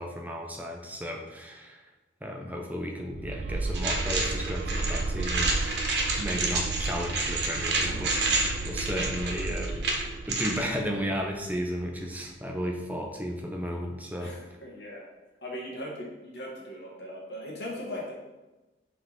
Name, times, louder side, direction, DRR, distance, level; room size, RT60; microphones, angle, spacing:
voice 1, 0.0-1.8 2.2-9.9 10.3-14.3, equal, 10° right, 1 dB, 0.7 m, -34 dB
sound 1, 3.1-12.0, right 3 dB, 35° right, 0.3 m, -34 dB
sound 2, 3.7-10.6, right 3 dB, 60° right, 1.2 m, -29 dB
voice 2, 14.2-15.1 15.4-18.2, left 1 dB, 60° left, -3 dB, 1.7 m, -39 dB
5.7 x 3.7 x 5.9 m, 1.1 s
head